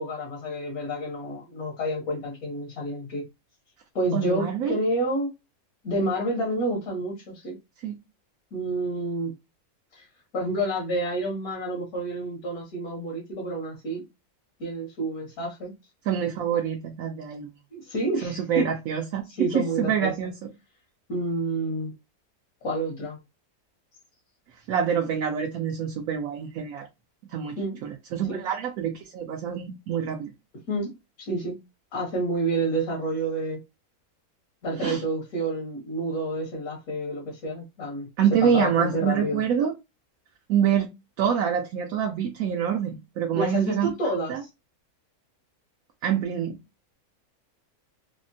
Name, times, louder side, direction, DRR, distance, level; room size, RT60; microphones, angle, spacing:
voice 1, 0.0-3.2 3.9-5.3 5.8-7.5 8.5-9.3 9.9-10.1 10.3-14.0 14.6-15.7 17.7-18.7 19.4-20.1 21.1-21.9 22.6-23.2 27.6-27.8 28.3-28.4 30.7-30.9 31.2-31.6 31.9-33.6 34.6-38.1 38.4-39.4 43.3-44.5, right 1 dB, 75° left, 1.5 m, -29 dB
voice 2, 4.1-4.8 7.8-8.0 16.1-17.5 18.2-20.5 24.7-26.9 27.3-30.3 34.8-35.0 38.2-39.7 40.5-40.9 41.2-43.9 44.3-44.4 46.0-46.6, right 8 dB, 75° right, 0.9 m, -26 dB
3.5 x 2.0 x 2.6 m
omnidirectional pair, 1.6 m